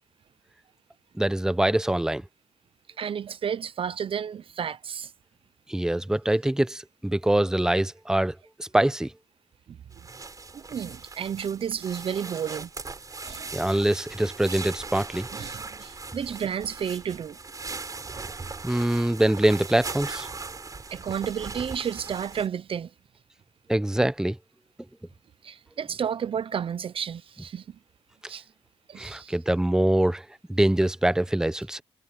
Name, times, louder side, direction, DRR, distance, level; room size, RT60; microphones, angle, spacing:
voice 1, 1.2-2.2 5.7-9.1 13.5-15.3 18.6-20.3 23.7-24.4 29.0-31.8, right 1 dB, 5° right, 0.8 m, -24 dB
voice 2, 3.0-5.1 9.7-9.8 10.5-12.7 13.2-13.6 15.3-17.4 20.9-22.9 25.4-27.8 28.3-28.5 28.9-29.4, right 8 dB, 50° right, 0.7 m, -32 dB
sound 1, 9.9-22.5, right 4 dB, 30° right, 5.1 m, -39 dB
cardioid pair, 90°, 11 cm